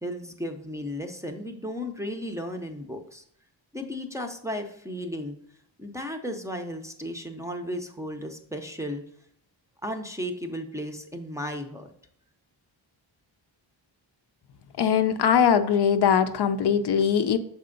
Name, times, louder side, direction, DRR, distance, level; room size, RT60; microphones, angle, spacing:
voice 1, 0.0-3.2 3.7-5.4 5.8-9.0 9.8-11.9, equal, 5° right, 3 dB, 0.5 m, -34 dB
voice 2, 14.8-17.4, left 7 dB, 60° left, 9 dB, 0.5 m, -21 dB
6.6 x 4.3 x 3.8 m, 0.68 s
wide cardioid pair, 125°, 46 cm